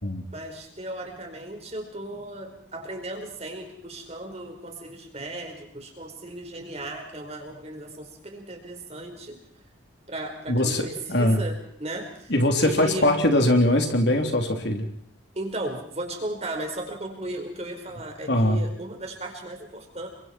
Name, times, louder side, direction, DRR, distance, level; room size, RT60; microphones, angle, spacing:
voice 1, 0.3-9.5 10.1-12.3 12.6-13.1 15.3-20.1, right 1 dB, 35° right, 3 dB, 4.7 m, -36 dB
voice 2, 10.5-10.8 11.1-11.4 12.3-14.9 18.3-18.6, left 1 dB, 60° left, 4 dB, 3.4 m, -21 dB
30.0 x 24.0 x 4.6 m, 0.67 s
head